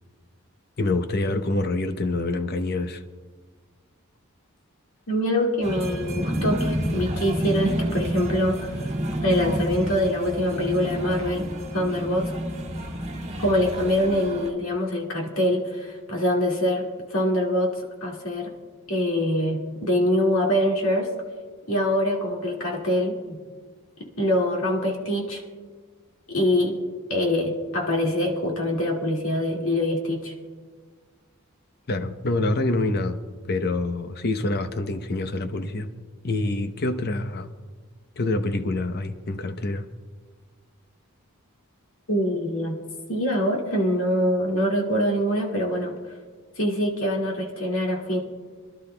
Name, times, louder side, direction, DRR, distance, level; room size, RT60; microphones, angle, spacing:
voice 1, 0.8-3.0 31.9-33.2 33.5-35.9 36.2-37.5 38.2-39.9, left 2 dB, 45° left, 9 dB, 0.7 m, -26 dB
voice 2, 5.1-8.9 9.2-11.5 11.7-12.3 13.4-17.7 18.0-18.5 18.9-21.1 21.7-23.4 24.2-25.4 26.3-26.8 27.1-30.3 42.1-42.8 43.1-45.9 46.6-48.2, equal, 65° left, -1 dB, 2.1 m, -24 dB
sound 1, 5.6-14.5, right 1 dB, 30° right, 1.6 m, -29 dB
27.0 x 11.5 x 2.2 m, 1.5 s
head